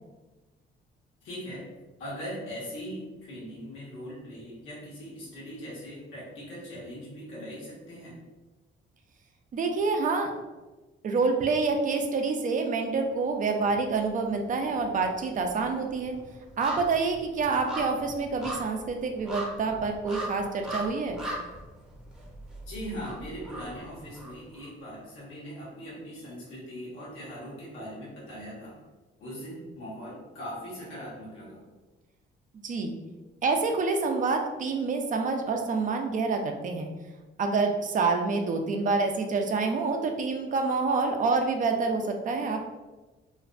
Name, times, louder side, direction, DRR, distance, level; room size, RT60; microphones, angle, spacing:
voice 1, 1.2-1.7 2.0-8.1 22.7-28.8 29.2-31.6, equal, 85° left, -6 dB, 1.0 m, -40 dB
voice 2, 9.5-10.3 11.0-16.2 16.6-21.2 32.6-32.9 33.4-36.9 37.4-42.7, right 4 dB, 40° right, 4 dB, 0.4 m, -27 dB
sound 1, 13.6-14.4 14.7-24.7 25.0-25.1, right 1 dB, 5° right, 0.6 m, -39 dB
2.5 x 2.1 x 2.4 m, 1.2 s
cardioid pair, 90°, 20 cm